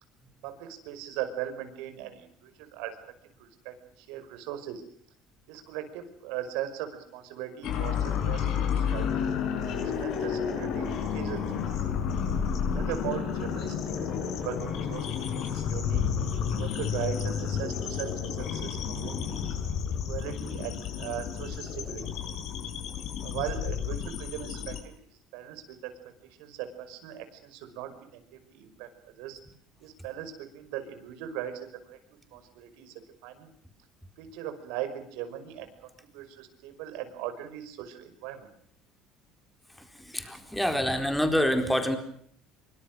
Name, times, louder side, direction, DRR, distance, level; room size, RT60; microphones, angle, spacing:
voice 1, 0.4-3.0 3.4-4.8 5.5-9.3 9.7-11.5 12.7-15.1 15.3-16.0 16.5-19.4 20.0-22.2 23.2-25.0 25.3-25.9 26.4-29.4 29.8-32.0 32.3-33.5 34.2-38.5, right 11 dB, 80° right, 8 dB, 5.6 m, -39 dB
sound 1, 7.6-24.8, left 7 dB, 55° left, 7.5 m, -31 dB
voice 2, 40.0-42.0, equal, 5° left, 6 dB, 4.3 m, -26 dB
25.5 x 24.0 x 6.3 m, 0.64 s
cardioid pair, 140°, 0 cm